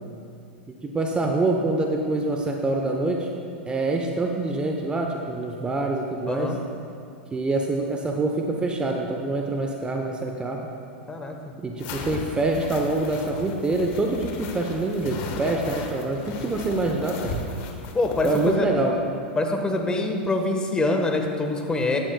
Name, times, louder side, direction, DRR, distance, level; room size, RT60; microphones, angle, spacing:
voice 1, 0.7-3.3 3.7-6.6 7.3-10.7 11.6-17.5 18.2-19.0, right 2 dB, 15° right, 2 dB, 0.8 m, -25 dB
voice 2, 6.3-6.6 11.1-11.5 17.9-18.7 19.3-22.0, left 2 dB, 15° left, 3 dB, 1.3 m, -25 dB
sound 1, 11.8-18.6, left 4 dB, 55° left, 1.3 m, -36 dB
15.0 x 11.0 x 2.3 m, 2.5 s
hypercardioid pair, 100°, 6 cm